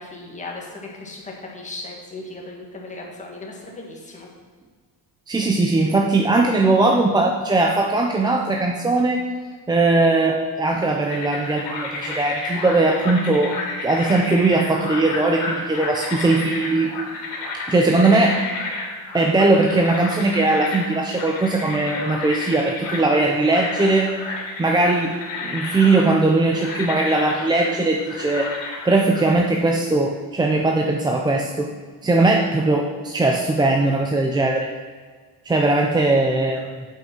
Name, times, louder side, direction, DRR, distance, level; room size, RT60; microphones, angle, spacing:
voice 1, 0.0-4.3, left 2 dB, 15° left, -2 dB, 1.7 m, -37 dB
voice 2, 5.3-9.3 9.7-16.9 17.7-18.4 19.1-24.1 24.6-25.2 25.4-28.5 28.8-31.7 32.0-34.7 35.5-36.8, right 2 dB, 10° right, 0 dB, 0.4 m, -19 dB
sound 1, 11.1-29.3, left 3 dB, 85° left, 2.5 m, -31 dB
8.9 x 5.6 x 6.0 m, 1.5 s
cardioid pair, 165°, 43 cm